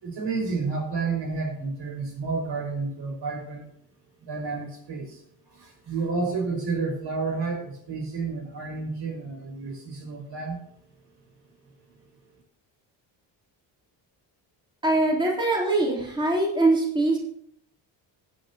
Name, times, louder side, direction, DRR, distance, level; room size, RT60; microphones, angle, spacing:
voice 1, 0.0-3.6 4.2-5.2 5.5-10.6, right 4 dB, 65° right, 1 dB, 5.7 m, -30 dB
voice 2, 14.8-17.2, right 2 dB, 10° right, -4 dB, 3.6 m, -22 dB
16.0 x 9.3 x 2.9 m, 0.68 s
cardioid pair, 100°, 46 cm